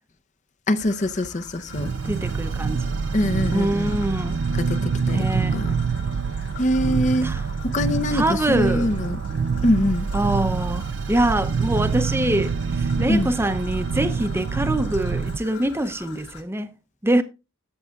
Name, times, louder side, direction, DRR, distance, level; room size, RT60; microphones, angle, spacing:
voice 1, 0.7-1.9 3.1-3.9 4.6-5.3 5.5-5.7 6.6-7.3 7.6-9.2 9.6-10.1 13.1-13.3, left 1 dB, 35° left, 0.6 m, -23 dB
Traffic noise roadway noise / Trickle dribble, 0.8-16.4, left 4 dB, 55° left, 1.7 m, -44 dB
sound 1, 1.7-15.4, right 5 dB, 55° right, 0.4 m, -26 dB
voice 2, 2.0-2.9 3.5-4.4 5.1-5.6 7.2-7.4 8.1-8.9 10.1-16.7 17.0-17.2, right 1 dB, 10° right, 0.7 m, -24 dB
13.5 x 7.8 x 2.4 m
head